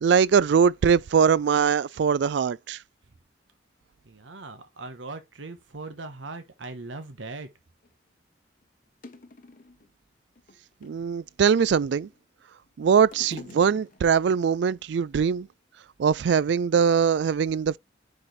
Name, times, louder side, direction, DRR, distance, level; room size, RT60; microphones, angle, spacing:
voice 1, 0.0-2.8 10.8-12.1 12.8-15.5 16.0-17.8, right 6 dB, 65° right, 0.3 m, -22 dB
voice 2, 4.0-7.5, right 3 dB, 80° right, 1.1 m, -40 dB
sound 1, 7.8-7.9 8.6-8.7 9.0-9.9 10.4-11.1 11.8-12.4 12.7-14.3 15.1-15.2, left 2 dB, 45° left, 0.9 m, -46 dB
9.7 x 4.3 x 3.2 m
head